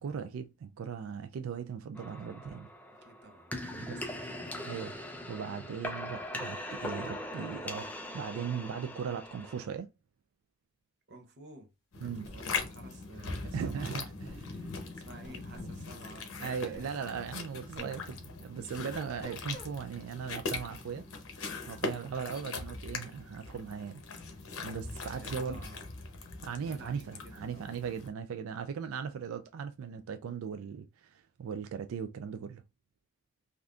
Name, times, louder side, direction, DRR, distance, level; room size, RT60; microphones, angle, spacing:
voice 1, 0.0-2.7 3.7-4.0 4.6-9.9 12.0-12.3 13.4-14.7 16.4-21.1 21.7-24.0 24.6-25.7 26.4-32.6, right 7 dB, 85° right, 0.3 m, -38 dB
sound 1, 2.0-9.7, left 1 dB, 10° left, 0.4 m, -41 dB
voice 2, 3.0-4.5 11.1-14.1 14.9-16.9 21.9-22.2 25.1-26.0 26.6-27.7, right 2 dB, 50° right, 0.7 m, -53 dB
sound 2, 11.9-28.1, left 4 dB, 90° left, 0.8 m, -41 dB
sound 3, 12.2-12.7 14.2-14.4 15.2-15.8 16.7-16.9 17.7-17.9 18.9-19.7, left 1 dB, 50° left, 1.0 m, -48 dB
3.5 x 2.5 x 2.3 m
head